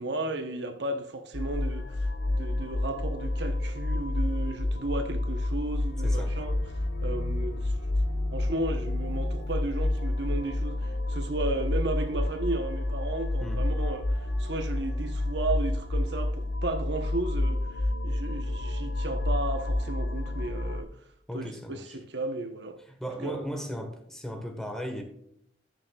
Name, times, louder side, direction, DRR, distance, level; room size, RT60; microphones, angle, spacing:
voice 1, 0.0-6.6 7.0-7.7 8.3-20.9 21.3-22.8 23.2-23.3, right 2 dB, 65° right, 0.9 m, -34 dB
sound 1, 1.3-20.8, left 1 dB, 60° left, 1.0 m, -29 dB
voice 2, 6.0-6.3 13.4-13.6 21.3-22.0 22.8-25.0, equal, 5° left, 1.3 m, -36 dB
14.5 x 6.5 x 2.3 m
head